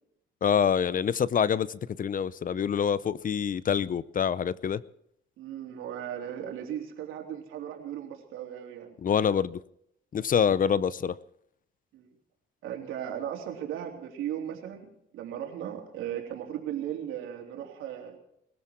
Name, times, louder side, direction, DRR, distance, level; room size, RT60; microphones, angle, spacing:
voice 1, 0.4-4.8 9.0-9.6 10.1-11.1, left 7 dB, 45° left, 0.6 m, -26 dB
voice 2, 5.4-9.0 11.9-12.1 12.6-18.2, right 10 dB, 90° right, 3.4 m, -37 dB
21.0 x 14.5 x 4.6 m
cardioid pair, 90°, 20 cm